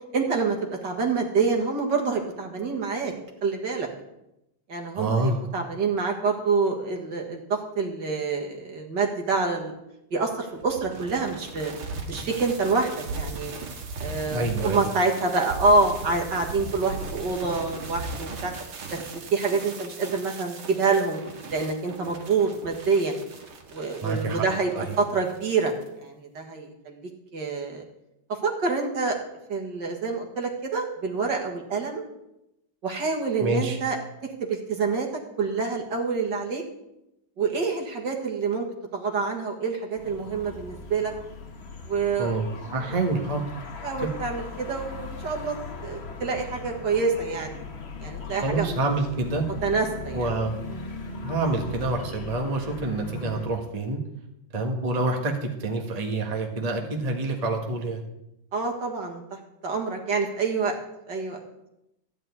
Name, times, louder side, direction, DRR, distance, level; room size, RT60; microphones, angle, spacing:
voice 1, 0.1-3.1 3.4-3.9 4.7-9.7 10.1-11.7 12.1-13.5 14.0-18.5 18.9-21.2 21.5-23.1 23.7-25.7 26.0-27.0 27.3-27.8 28.3-29.2 29.5-32.0 32.8-34.0 34.4-35.1 35.4-36.6 37.4-38.7 38.9-41.1 41.9-42.5 42.9-43.0 43.8-45.6 45.8-47.6 48.0-48.8 49.6-50.2 58.5-60.7 61.1-61.4, right 4 dB, 55° right, 1 dB, 2.3 m, -27 dB
voice 2, 4.9-5.4 14.3-14.8 24.0-24.5 24.7-25.0 33.4-33.8 42.2-43.4 48.4-49.4 50.1-50.6 51.2-54.0 54.5-58.0, right 2 dB, 20° right, 2 dB, 1.4 m, -27 dB
sound 1, 10.6-25.9, right 3 dB, 80° right, 2.6 m, -38 dB
sound 2, 40.0-53.5, left 3 dB, 35° left, 1.2 m, -39 dB
14.0 x 5.5 x 9.6 m, 0.86 s
omnidirectional pair, 2.3 m